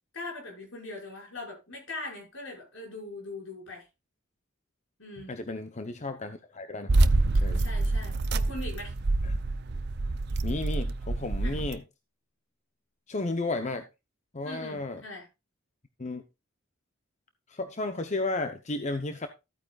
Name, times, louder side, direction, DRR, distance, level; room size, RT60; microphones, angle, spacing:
voice 1, 0.1-3.9 5.0-5.4 7.6-8.9 11.4-11.6 14.4-15.3, left 2 dB, 75° left, 6.1 m, -41 dB
voice 2, 5.3-7.0 7.4-7.6 9.2-9.4 10.4-11.8 13.1-13.9 14.3-15.0 16.0-16.2 17.5-19.3, left 2 dB, 35° left, 0.8 m, -33 dB
sound 1, 6.9-11.7, right 2 dB, 55° right, 0.6 m, -26 dB
14.0 x 8.9 x 2.4 m
head